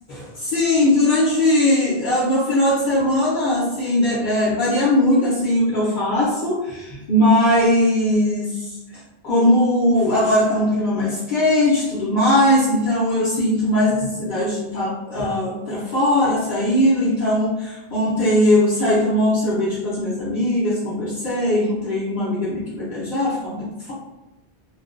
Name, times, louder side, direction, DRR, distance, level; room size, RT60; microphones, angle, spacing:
voice 1, 0.1-23.9, left 1 dB, 55° left, -8 dB, 0.7 m, -20 dB
2.5 x 2.1 x 2.4 m, 0.98 s
omnidirectional pair, 1.1 m